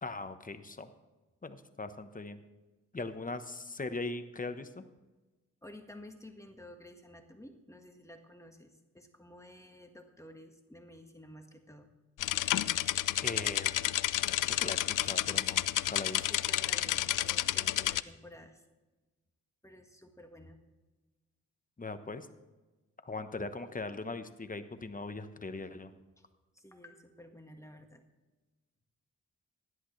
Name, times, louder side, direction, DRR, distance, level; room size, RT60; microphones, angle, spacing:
voice 1, 0.0-0.9 1.4-2.4 2.9-4.8 13.2-13.7 14.3-16.3 21.8-22.3 23.0-25.9, left 3 dB, 25° left, 10 dB, 1.0 m, -40 dB
voice 2, 5.6-11.9 16.1-18.6 19.6-20.6 26.2-26.3 26.5-28.0, left 1 dB, 10° left, 4 dB, 1.6 m, -52 dB
sound 1, 12.2-18.0, left 13 dB, 80° left, 0.5 m, -30 dB
16.5 x 11.0 x 3.2 m, 1.2 s
cardioid pair, 75°, 31 cm